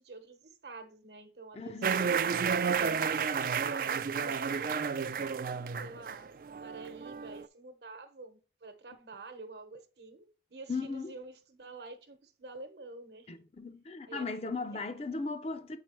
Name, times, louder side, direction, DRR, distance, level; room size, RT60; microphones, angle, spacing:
voice 1, 0.0-2.4 2.7-4.9 5.8-13.3 14.1-14.8 15.1-15.2, right 3 dB, 75° right, 1.0 m, -48 dB
voice 2, 1.5-2.2 10.7-11.1 13.3-15.8, left 3 dB, 35° left, 0.5 m, -37 dB
sound 1, 1.8-7.4, right 6 dB, 50° right, 0.3 m, -31 dB
7.6 x 4.7 x 3.0 m
head